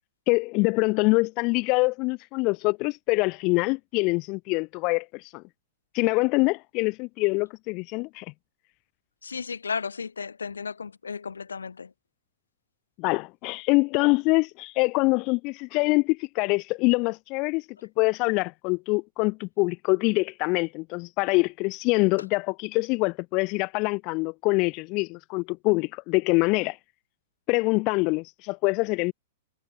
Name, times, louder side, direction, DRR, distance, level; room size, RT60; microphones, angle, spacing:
voice 1, 0.3-5.4 5.9-8.3 13.0-17.7 18.0-26.8 27.5-29.1, left 27 dB, 40° left, 0.3 m, -25 dB
voice 2, 9.2-11.9, left 5 dB, 90° left, 0.8 m, -34 dB
hypercardioid pair, 115°, 0 cm